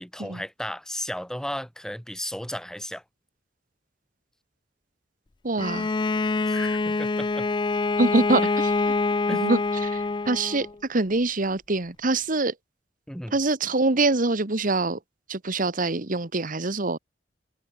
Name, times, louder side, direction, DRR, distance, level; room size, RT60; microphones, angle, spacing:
voice 1, 0.0-3.0 6.5-7.5 9.3-9.5 13.1-13.3, equal, 5° left, 2.6 m, -34 dB
voice 2, 5.4-5.9 8.0-8.9 9.4-12.5 13.3-15.0 15.3-17.0, right 2 dB, 50° right, 1.5 m, -25 dB
Bowed string instrument, 5.6-10.7, left 3 dB, 25° left, 0.5 m, -25 dB
head